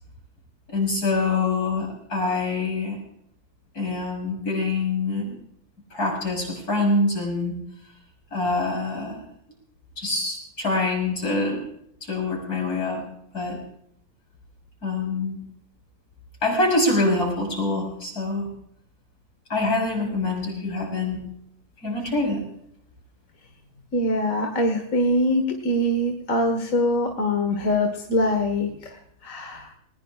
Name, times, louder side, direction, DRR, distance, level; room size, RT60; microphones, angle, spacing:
voice 1, 0.7-3.0 3.7-5.3 5.9-7.6 8.3-9.2 10.0-11.6 12.0-13.0 13.3-13.6 14.8-15.4 16.4-18.5 19.5-21.2 21.8-22.4, left 2 dB, 80° left, 0 dB, 6.3 m, -25 dB
voice 2, 23.9-29.7, left 1 dB, 60° left, 4 dB, 2.0 m, -23 dB
20.5 x 20.0 x 2.5 m, 0.72 s
omnidirectional pair, 1.6 m